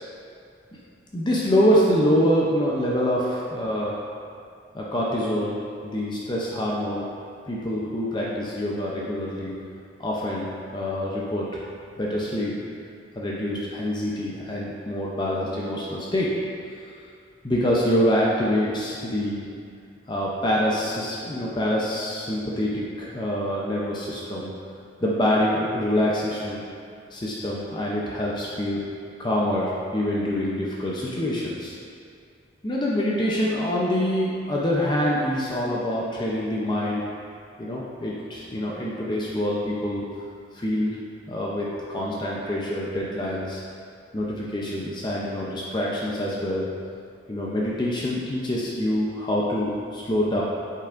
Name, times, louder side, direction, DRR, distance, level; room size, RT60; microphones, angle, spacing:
voice 1, 1.1-4.1 4.7-7.1 7.5-9.6 10.0-11.6 12.0-12.6 13.2-16.4 17.4-19.5 20.1-24.5 25.0-26.6 27.1-28.8 29.2-31.7 32.6-37.1 37.6-40.0 40.5-41.0 41.3-43.6 44.1-46.7 47.3-50.4, equal, 25° left, -5 dB, 0.6 m, -25 dB
8.5 x 5.5 x 2.5 m, 2.3 s
head